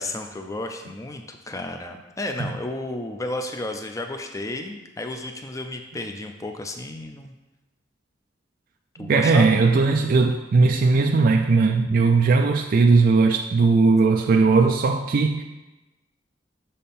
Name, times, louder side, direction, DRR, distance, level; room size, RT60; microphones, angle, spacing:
voice 1, 0.0-7.3 9.0-9.6, left 2 dB, 20° left, 5 dB, 0.5 m, -32 dB
voice 2, 9.0-15.4, right 4 dB, 50° right, 4 dB, 0.4 m, -18 dB
6.4 x 4.3 x 5.3 m, 1.1 s
head